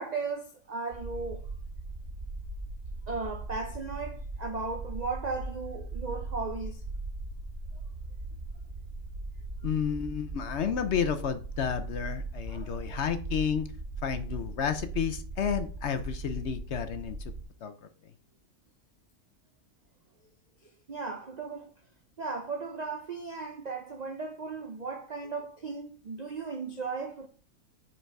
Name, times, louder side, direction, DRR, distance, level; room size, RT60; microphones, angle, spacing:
voice 1, 0.0-1.5 3.1-6.8 9.6-9.7 12.5-13.0 20.6-21.7 22.2-27.3, right 4 dB, 55° right, 0.4 m, -36 dB
sound 1, 0.9-17.4, right 2 dB, 40° right, 1.8 m, -39 dB
voice 2, 9.6-13.7 14.0-17.2 17.6-17.7, left 7 dB, 60° left, 0.8 m, -31 dB
6.5 x 4.5 x 4.6 m
omnidirectional pair, 1.5 m